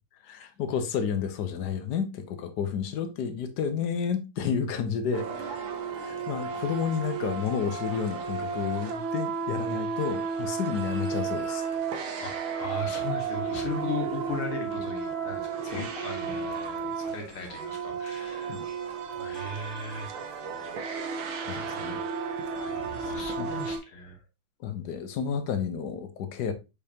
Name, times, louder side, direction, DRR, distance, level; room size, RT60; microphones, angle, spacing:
voice 1, 0.2-11.7 15.7-15.8 17.0-17.1 18.5-18.6 21.5-22.0 22.5-23.1 23.4-23.5 24.6-26.5, left 7 dB, 65° left, 1.2 m, -31 dB
sound 1, 5.1-23.8, right 5 dB, 70° right, 1.7 m, -33 dB
voice 2, 12.2-18.6 19.2-20.7 21.3-22.0 22.7-24.2, left 3 dB, 85° left, 2.4 m, -38 dB
6.7 x 5.1 x 2.8 m
omnidirectional pair, 2.3 m